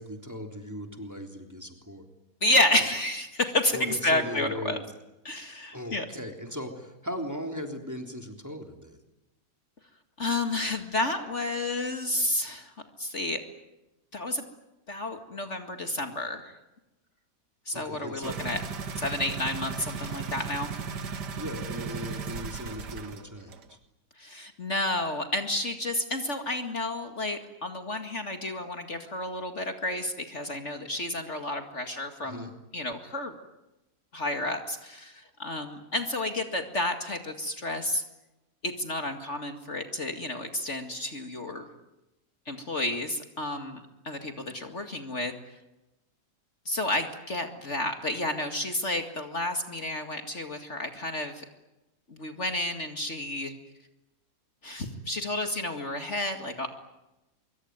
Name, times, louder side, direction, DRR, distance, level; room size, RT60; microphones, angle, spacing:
voice 1, 0.0-2.1 3.7-4.8 5.7-9.0 17.7-18.4 21.4-23.8 32.2-32.5, equal, 10° right, 4 dB, 3.3 m, -38 dB
voice 2, 2.4-4.8 5.2-6.1 10.2-12.7 13.0-13.4 14.1-14.4 14.9-16.6 17.7-18.6 19.0-20.7 24.2-33.4 34.1-38.0 38.6-41.6 42.5-45.3 46.7-51.4 52.1-53.5 54.6-56.7, left 1 dB, 45° left, 6 dB, 2.4 m, -31 dB
sound 1, 18.2-23.2 23.5-23.6, right 5 dB, 85° right, 2.2 m, -36 dB
25.0 x 24.0 x 9.5 m, 0.96 s
omnidirectional pair, 1.8 m